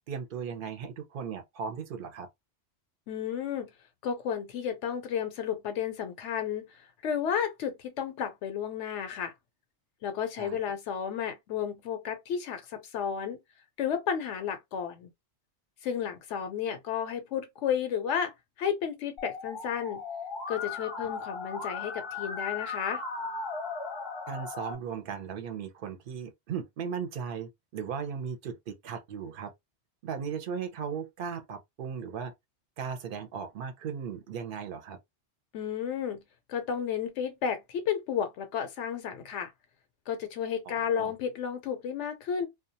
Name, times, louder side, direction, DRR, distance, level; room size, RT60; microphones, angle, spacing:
voice 1, 0.1-2.3 10.4-10.6 24.3-29.5 30.0-32.3 32.8-35.0 40.7-41.1, right 6 dB, 55° right, 0.7 m, -37 dB
voice 2, 3.1-3.7 4.0-9.3 10.0-13.4 13.8-15.1 15.8-20.0 20.5-23.0 35.5-36.2 36.5-39.5 40.1-42.5, left 8 dB, 80° left, 0.9 m, -32 dB
Musical instrument, 19.2-24.7, left 4 dB, 30° left, 0.6 m, -37 dB
2.3 x 2.2 x 2.6 m
omnidirectional pair, 1.2 m